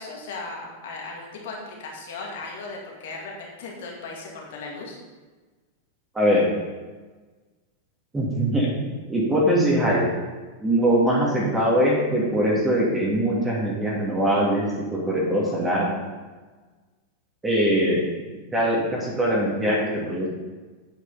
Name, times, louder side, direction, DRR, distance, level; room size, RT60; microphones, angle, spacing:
voice 1, 0.0-5.0, left 3 dB, 55° left, -1 dB, 2.1 m, -37 dB
voice 2, 6.1-6.5 8.1-10.0 10.6-15.9 17.4-18.0 18.5-20.3, equal, 10° right, -4 dB, 2.4 m, -22 dB
9.3 x 8.8 x 4.1 m, 1.3 s
figure-of-eight pair, 90°, 0 cm